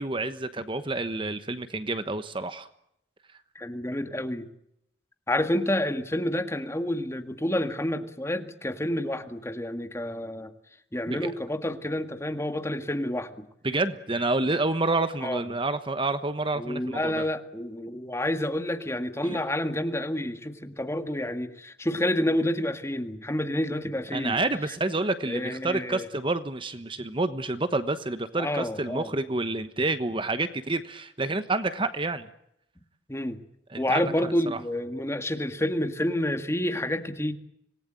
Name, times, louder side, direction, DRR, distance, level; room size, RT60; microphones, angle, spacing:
voice 1, 0.0-2.7 11.1-11.3 13.6-17.2 19.2-19.4 24.1-32.3 33.7-34.1 34.5-34.6, right 2 dB, 30° right, 11 dB, 1.2 m, -29 dB
voice 2, 3.6-4.5 5.3-10.5 10.9-13.5 15.2-15.4 16.6-24.4 25.3-26.1 28.4-29.1 33.1-33.4 33.8-37.3, left 1 dB, 15° left, 8 dB, 1.8 m, -29 dB
26.5 x 19.5 x 9.0 m, 0.76 s
head